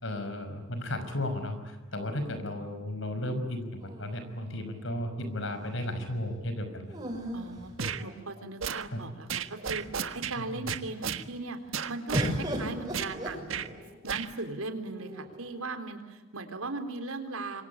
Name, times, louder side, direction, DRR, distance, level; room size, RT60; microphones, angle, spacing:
voice 1, 0.0-6.9 8.9-9.0 10.4-10.7, left 1 dB, 60° left, 9 dB, 5.6 m, -34 dB
sound 1, 3.8-4.9 6.9-8.4 9.2-9.3 9.6-10.2 12.1-14.0 14.9-15.6, equal, 20° right, 6.9 m, -36 dB
voice 2, 7.3-7.7 8.0-9.9 10.1-11.6 11.9-13.7 14.0-17.6, right 3 dB, 85° right, 7 dB, 3.8 m, -38 dB
sound 2, 7.8-8.0 8.6-8.9 9.3-10.4 10.7-11.2 11.7-12.3 12.9-13.1 13.5-13.7 14.1-14.3, right 7 dB, 70° right, 1.5 m, -33 dB
27.5 x 24.0 x 8.6 m, 1.2 s
head